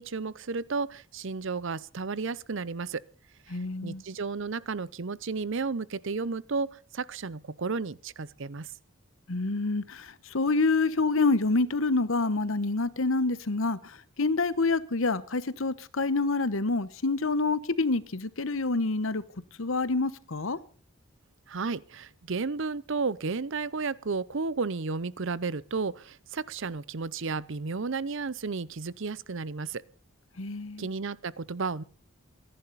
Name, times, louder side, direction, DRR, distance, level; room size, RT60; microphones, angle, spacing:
voice 1, 0.0-3.0 3.5-8.7 21.5-29.8 30.8-31.8, right 4 dB, 60° right, 0.7 m, -33 dB
voice 2, 3.5-4.0 9.3-19.2 19.6-20.6 30.4-30.9, left 3 dB, 70° left, 1.1 m, -27 dB
25.5 x 11.0 x 4.1 m
head